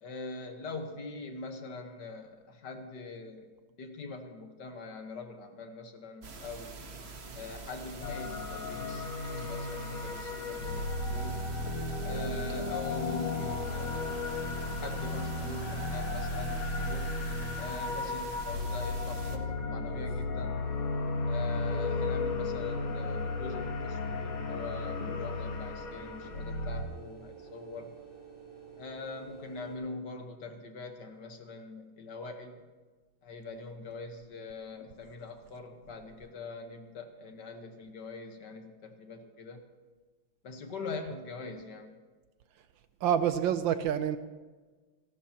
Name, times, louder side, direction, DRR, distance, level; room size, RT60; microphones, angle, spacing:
voice 1, 0.0-3.5 3.8-6.7 7.3-11.5 12.0-14.0 14.2-17.1 17.6-20.7 21.3-27.9 28.8-32.6 33.2-39.6 40.4-42.0, left 3 dB, 55° left, 5 dB, 1.7 m, -43 dB
sound 1, 6.2-19.4, right 3 dB, 40° right, 1.0 m, -45 dB
sound 2, 8.0-26.8, left 3 dB, 75° left, 2.3 m, -34 dB
sound 3, 21.5-29.8, right 6 dB, 10° left, 5.9 m, -50 dB
voice 2, 43.0-44.2, right 9 dB, 75° right, 11 dB, 1.2 m, -27 dB
29.0 x 12.0 x 2.9 m, 1.4 s
omnidirectional pair, 2.3 m